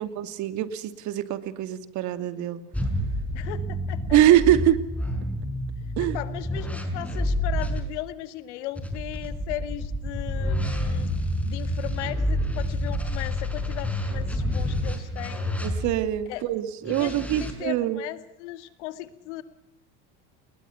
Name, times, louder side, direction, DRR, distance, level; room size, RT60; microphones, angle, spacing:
voice 1, 0.0-2.6 4.1-4.8 6.0-6.2 15.6-18.0, right 12 dB, 55° right, 11 dB, 2.6 m, -23 dB
sound 1, 2.7-7.8 8.7-16.1 16.8-17.5, left 1 dB, 5° left, 5.7 m, -28 dB
voice 2, 3.3-4.2 6.0-11.1 11.4-15.6 16.3-16.4 16.9-19.4, left 14 dB, 85° left, 12 dB, 2.2 m, -37 dB
30.0 x 20.5 x 5.8 m, 0.78 s
supercardioid pair, 115°, 34 cm